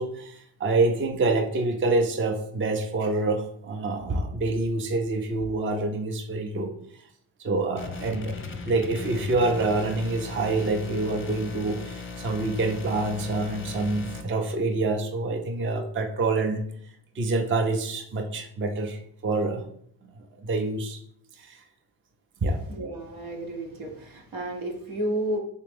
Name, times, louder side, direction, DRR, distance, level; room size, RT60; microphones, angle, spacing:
voice 1, 0.0-6.7 7.4-8.4 8.7-16.6 17.2-19.6 20.0-20.1 20.4-21.0 21.4-21.6 22.4-22.6, right 2 dB, 25° right, 4 dB, 0.5 m, -26 dB
sound 1, 7.8-14.2, left 4 dB, 25° left, 0.6 m, -38 dB
voice 2, 22.7-25.4, right 1 dB, 75° right, 1 dB, 0.9 m, -31 dB
3.3 x 2.9 x 3.4 m, 0.67 s
supercardioid pair, 50°, 48 cm